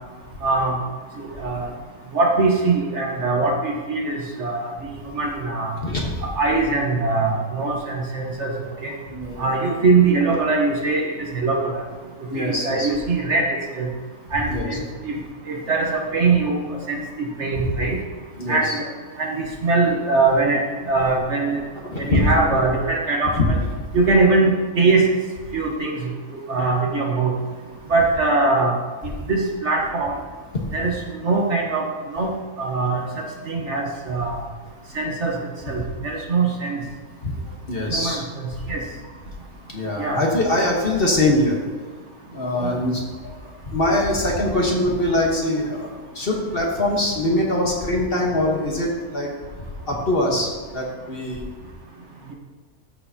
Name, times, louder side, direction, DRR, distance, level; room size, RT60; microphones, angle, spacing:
voice 1, 0.4-0.8 1.2-1.7 2.1-4.7 5.0-5.7 6.2-8.5 8.8-8.9 9.4-11.8 12.3-13.9 14.3-15.1 15.5-16.6 16.9-18.0 18.5-18.8 19.2-21.6 22.0-23.3 23.9-25.0 25.5-26.1 26.5-27.3 27.9-28.7 29.0-30.1 30.7-31.8 32.1-32.3 32.6-33.0 33.5-34.4 34.9-35.3 35.7-36.8 37.9-38.8 40.0-40.2 42.6-42.7, right 3 dB, 50° right, 0 dB, 1.3 m, -22 dB
voice 2, 5.8-6.2 9.1-9.5 12.3-12.9 14.5-14.7 17.6-17.7 18.4-18.8 21.8-22.3 23.4-23.6 30.5-30.6 37.2-37.3 37.7-38.2 39.7-41.6 42.3-43.0 43.4-49.3 49.9-51.5, left 1 dB, 40° left, -1 dB, 1.4 m, -23 dB
13.5 x 6.7 x 2.8 m, 1.4 s
omnidirectional pair, 1.6 m